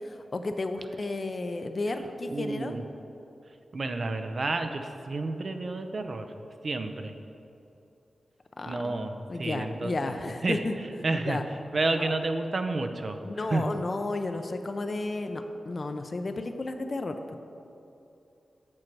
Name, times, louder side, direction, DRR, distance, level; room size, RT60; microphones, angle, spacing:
voice 1, 0.0-2.7 8.6-10.8 11.2-11.4 12.0-12.1 13.2-17.4, left 2 dB, 40° left, 7 dB, 0.5 m, -33 dB
voice 2, 2.3-2.8 3.7-6.3 6.6-7.1 8.7-10.6 11.0-11.4 11.7-13.2 13.5-13.6, right 3 dB, 45° right, 7 dB, 0.5 m, -30 dB
7.6 x 7.3 x 4.6 m, 2.7 s
wide cardioid pair, 120°, 0 cm